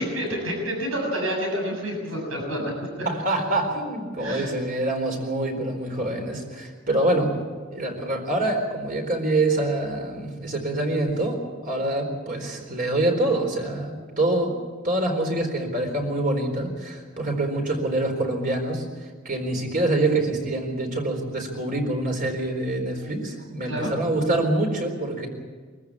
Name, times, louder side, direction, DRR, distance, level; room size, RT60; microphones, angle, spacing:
voice 1, 0.0-2.7 3.0-3.1 4.2-4.5 23.6-23.9, equal, 90° right, 1 dB, 7.0 m, -28 dB
voice 2, 3.0-7.3 7.7-14.5 14.8-18.8 19.2-25.3, right 2 dB, 45° right, 3 dB, 4.2 m, -25 dB
24.0 x 14.5 x 8.5 m, 1.5 s
head